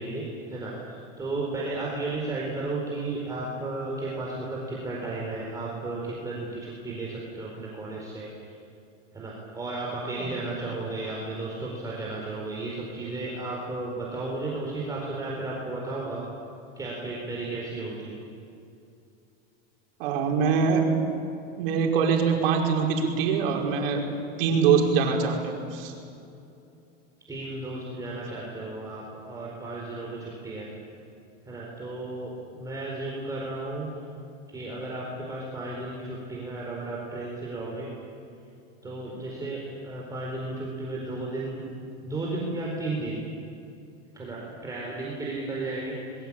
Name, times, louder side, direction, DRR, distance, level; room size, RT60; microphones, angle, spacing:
voice 1, 0.0-8.5 9.1-16.2 16.8-18.1 27.3-30.7 31.4-33.9 34.5-37.9 38.8-43.3 44.1-46.3, right 2 dB, 10° right, -4 dB, 4.5 m, -34 dB
voice 2, 20.0-20.9 21.6-24.1 24.4-25.9, right 6 dB, 65° right, 1 dB, 5.3 m, -23 dB
26.0 x 22.0 x 8.9 m, 2.6 s
supercardioid pair, 150°, 30 cm